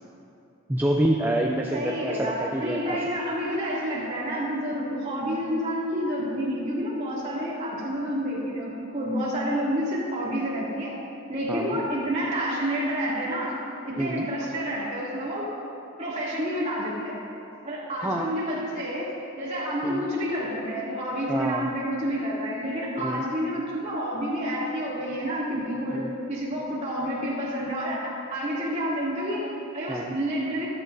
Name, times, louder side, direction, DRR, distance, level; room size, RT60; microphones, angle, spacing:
voice 1, 0.7-3.0 11.5-11.8 14.0-14.3 18.0-18.3 19.8-20.0 21.3-21.7 23.0-23.3 25.9-26.1 29.9-30.2, right 1 dB, 10° right, 1 dB, 0.4 m, -27 dB
voice 2, 1.7-11.0 11.3-13.6 13.8-15.5 16.0-17.2 17.6-30.7, equal, 30° right, -8 dB, 2.8 m, -29 dB
14.5 x 12.5 x 2.7 m, 2.7 s
head